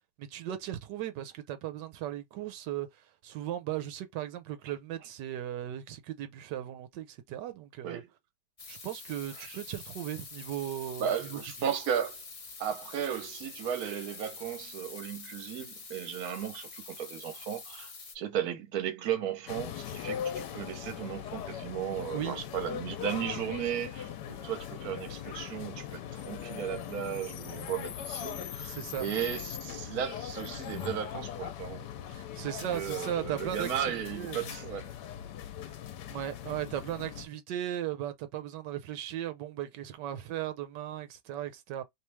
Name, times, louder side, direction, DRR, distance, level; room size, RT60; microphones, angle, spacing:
voice 1, 0.2-8.0 8.7-11.7 22.1-22.4 28.6-29.1 32.1-34.5 36.1-41.8, right 12 dB, 90° right, 1.3 m, -37 dB
sound 1, 8.6-18.1, left 4 dB, 45° left, 0.4 m, -46 dB
voice 2, 11.0-12.2 12.6-31.9 32.7-34.9, right 9 dB, 65° right, 1.3 m, -35 dB
sound 2, 19.5-37.3, left 9 dB, 80° left, 1.2 m, -40 dB
3.1 x 3.1 x 3.3 m
omnidirectional pair, 1.8 m